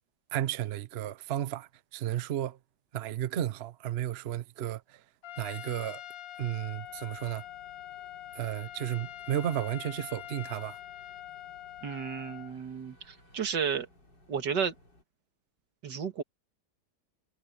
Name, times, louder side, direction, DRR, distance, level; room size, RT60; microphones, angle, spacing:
voice 1, 0.3-2.6 2.9-5.0 5.4-6.0 6.4-7.4 8.4-10.8, right 11 dB, 55° right, 0.7 m, -33 dB
Trumpet, 5.2-12.6, left 12 dB, 65° left, 1.1 m, -44 dB
sound 1, 6.9-15.0, left 1 dB, 90° left, 6.7 m, -61 dB
voice 2, 11.8-13.9 14.3-14.7 15.8-16.2, right 6 dB, 85° right, 2.3 m, -32 dB
omnidirectional pair, 1.8 m